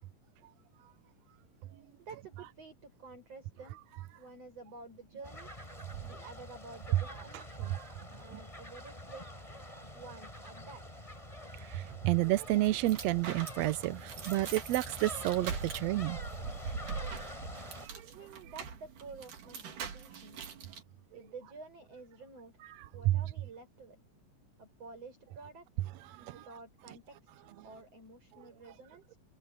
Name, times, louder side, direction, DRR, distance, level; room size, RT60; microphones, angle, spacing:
voice 1, 2.0-3.8 4.1-5.5 6.0-7.8 8.1-9.4 9.9-11.1 17.8-20.4 21.1-22.7 22.9-24.0 24.6-25.8 26.3-29.2, right 4 dB, 45° right, 8.6 m, -51 dB
sound 1, 5.2-17.9, left 1 dB, 10° left, 7.0 m, -46 dB
voice 2, 11.7-16.2 23.1-23.2 26.2-26.3, right 16 dB, 80° right, 1.5 m, -30 dB
sound 2, 12.2-20.8, right 6 dB, 65° right, 4.0 m, -43 dB
omnidirectional pair, 3.9 m